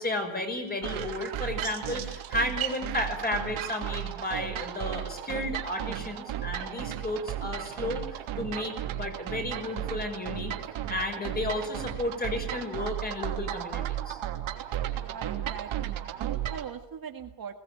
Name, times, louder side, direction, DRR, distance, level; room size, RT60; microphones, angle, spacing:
voice 1, 0.0-10.5 10.9-14.2, left 1 dB, 20° left, 4 dB, 5.7 m, -33 dB
sound 1, 0.8-16.7, right 11 dB, 80° right, 3.2 m, -34 dB
voice 2, 14.9-17.6, right 7 dB, 45° right, 5 dB, 2.0 m, -41 dB
22.0 x 18.5 x 8.9 m, 0.73 s
cardioid pair, 160°, 47 cm